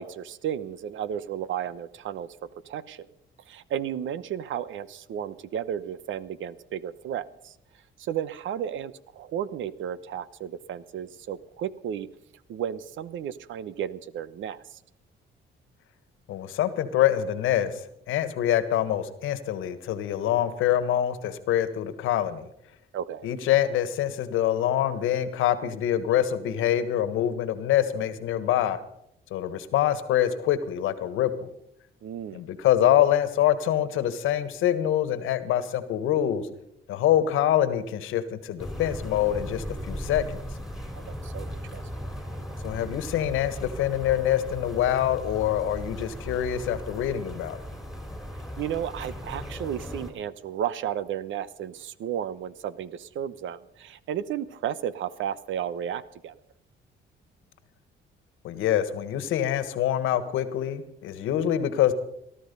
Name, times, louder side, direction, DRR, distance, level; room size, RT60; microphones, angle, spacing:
voice 1, 0.0-2.3 2.6-3.1 3.5-7.5 8.0-12.1 12.5-14.8 22.9-23.3 32.0-32.4 41.1-41.8 48.6-56.3, right 9 dB, 75° right, 17 dB, 0.9 m, -33 dB
voice 2, 16.3-17.8 18.1-22.5 23.2-28.8 29.3-31.5 32.3-36.5 36.9-40.4 42.6-47.6 58.4-61.9, left 11 dB, 90° left, 13 dB, 1.5 m, -25 dB
sound 1, 38.6-50.1, equal, ahead, 3.7 m, -37 dB
18.5 x 12.5 x 5.4 m, 0.75 s
cardioid pair, 90°, 20 cm